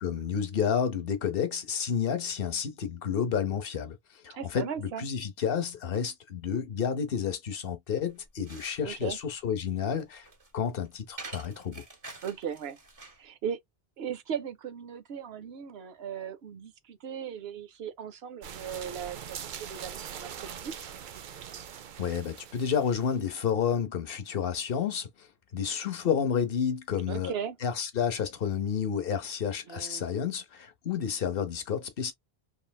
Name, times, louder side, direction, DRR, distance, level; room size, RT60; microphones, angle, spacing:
voice 1, 0.0-4.0 4.2-10.3 10.5-11.8 22.0-25.3 25.5-27.3 27.6-32.1, left 7 dB, 65° left, 1.0 m, -30 dB
voice 2, 4.3-5.1 8.8-9.2 12.2-12.8 13.2-13.6 14.0-20.8 27.1-27.6 29.7-30.1, right 8 dB, 80° right, 0.9 m, -37 dB
sound 1, 8.1-13.3, right 3 dB, 35° right, 1.2 m, -47 dB
sound 2, 18.4-23.3, right 8 dB, 60° right, 0.6 m, -42 dB
3.2 x 2.6 x 2.3 m
omnidirectional pair, 1.0 m